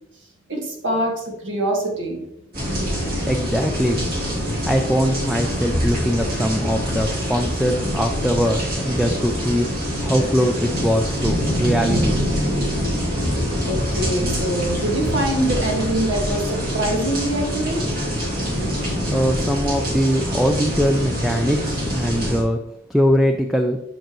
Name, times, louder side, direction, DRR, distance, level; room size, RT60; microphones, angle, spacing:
voice 1, 0.5-2.2 13.7-17.8, right 1 dB, 70° right, 0 dB, 1.8 m, -24 dB
sound 1, 2.5-22.4, equal, 45° right, 2.4 m, -24 dB
voice 2, 3.3-4.1 4.7-9.7 10.0-12.2 19.1-22.6 22.9-23.8, equal, ahead, 4 dB, 0.4 m, -21 dB
9.0 x 5.8 x 3.1 m, 0.84 s
head